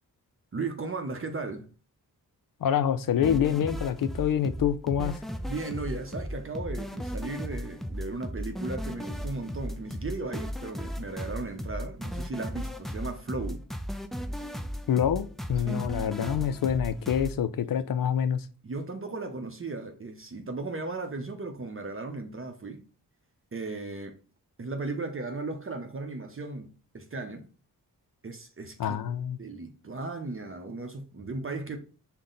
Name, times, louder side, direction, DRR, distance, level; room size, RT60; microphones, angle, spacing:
voice 1, 0.5-1.7 5.4-13.7 15.6-15.9 18.6-22.8 23.5-24.2 24.6-27.5 28.2-29.0 29.4-31.8, right 3 dB, 35° right, 0.7 m, -36 dB
voice 2, 2.6-5.2 14.9-18.4 28.8-29.4, left 9 dB, 60° left, 0.5 m, -26 dB
sound 1, 3.2-17.3, equal, ahead, 0.5 m, -35 dB
5.4 x 2.2 x 3.9 m
cardioid pair, 50°, 37 cm